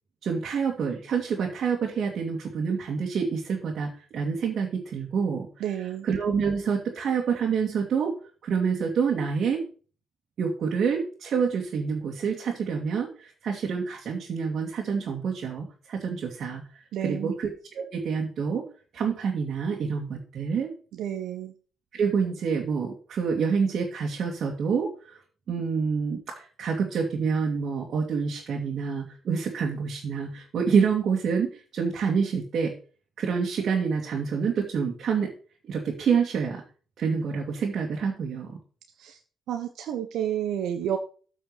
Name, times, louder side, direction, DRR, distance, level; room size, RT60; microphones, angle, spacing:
voice 1, 0.2-8.1 8.4-9.6 10.4-16.6 17.0-18.6 18.9-20.7 21.9-25.2 25.5-32.7 33.2-35.3 35.7-36.6 37.0-38.6, right 6 dB, 60° right, -1 dB, 2.3 m, -27 dB
voice 2, 5.6-6.1 16.9-17.3 21.0-21.5 39.0-39.2 39.5-41.0, right 10 dB, 75° right, 6 dB, 1.0 m, -30 dB
8.5 x 5.5 x 6.8 m, 0.40 s
cardioid pair, 85°, 0 cm